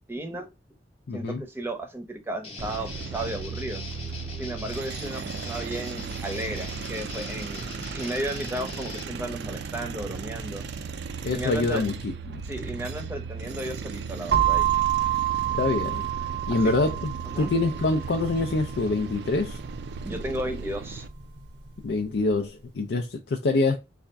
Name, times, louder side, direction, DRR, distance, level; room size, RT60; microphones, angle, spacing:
voice 1, 0.1-0.5 1.1-3.8 4.4-10.6 11.3-11.8 12.5-14.7 16.6-16.7 17.3-17.5 20.0-21.0, right 1 dB, 15° right, 0.7 m, -34 dB
voice 2, 1.1-1.4 11.2-12.4 15.6-16.0 16.5-19.6 21.8-23.8, left 3 dB, 70° left, 0.4 m, -25 dB
Guitar, 2.4-9.1, left 3 dB, 35° left, 0.9 m, -41 dB
sound 1, 2.6-21.1, right 5 dB, 65° right, 0.4 m, -36 dB
sound 2, 14.3-22.1, right 11 dB, 90° right, 0.8 m, -29 dB
4.1 x 2.4 x 3.4 m
head